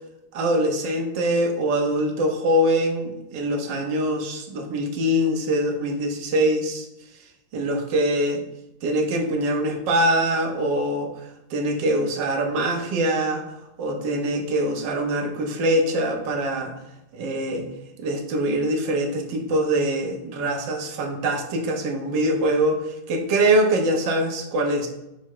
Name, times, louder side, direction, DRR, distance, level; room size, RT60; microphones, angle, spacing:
voice 1, 0.3-6.9 7.5-8.4 8.8-11.1 11.5-13.4 13.8-16.7 17.1-17.6 18.0-22.7 23.1-24.9, right 1 dB, 70° right, 4 dB, 1.3 m, -23 dB
5.7 x 2.0 x 4.5 m, 0.89 s
omnidirectional pair, 2.2 m